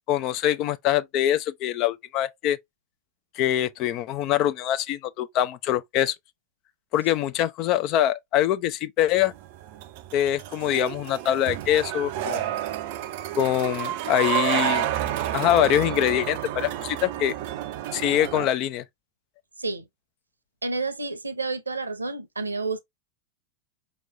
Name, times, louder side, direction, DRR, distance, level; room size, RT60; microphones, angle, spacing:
voice 1, 0.1-2.6 3.4-6.1 6.9-9.3 10.1-12.5 13.4-14.9 15.3-17.3 17.9-18.8, left 12 dB, 40° left, 0.5 m, -24 dB
sound 1, 9.2-18.5, right 12 dB, 50° right, 0.5 m, -30 dB
voice 2, 20.6-22.8, right 3 dB, 80° right, 0.8 m, -30 dB
5.3 x 3.0 x 2.6 m
figure-of-eight pair, 90°, 0 cm